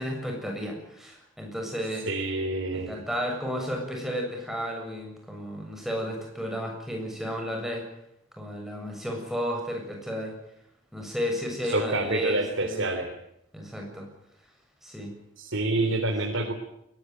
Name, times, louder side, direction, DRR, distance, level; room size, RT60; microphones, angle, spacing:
voice 1, 0.0-2.1 2.7-7.9 8.4-10.4 10.9-12.9 13.5-14.1 14.8-15.1 15.7-15.9, equal, ahead, 1 dB, 7.1 m, -33 dB
voice 2, 2.0-2.9 11.7-13.1 15.4-16.5, right 2 dB, 80° right, 3 dB, 3.4 m, -27 dB
22.0 x 19.5 x 9.5 m, 0.78 s
head